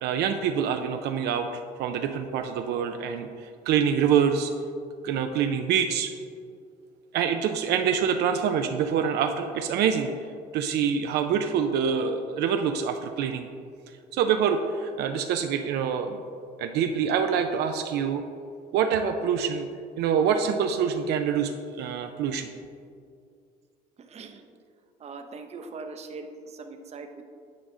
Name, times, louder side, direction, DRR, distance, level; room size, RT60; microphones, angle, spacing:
voice 1, 0.0-4.5 5.0-6.1 7.1-10.1 10.5-13.5 14.1-16.2 16.6-18.2 18.7-19.7 20.0-22.5, right 7 dB, 75° right, 6 dB, 0.4 m, -26 dB
voice 2, 24.0-24.4 25.0-27.2, right 4 dB, 40° right, 6 dB, 0.7 m, -41 dB
9.3 x 4.9 x 3.7 m, 2.3 s
cardioid pair, 110°, 17 cm